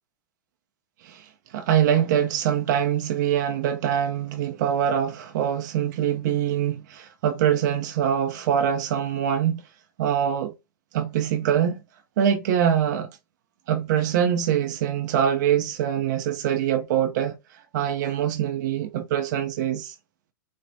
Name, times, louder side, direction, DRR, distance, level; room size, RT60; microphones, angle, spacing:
voice 1, 1.0-9.6 10.0-10.5 10.9-11.8 12.2-13.1 13.7-19.9, right 9 dB, 60° right, 0.5 m, -24 dB
4.2 x 2.0 x 2.6 m
hypercardioid pair, 110°, 11 cm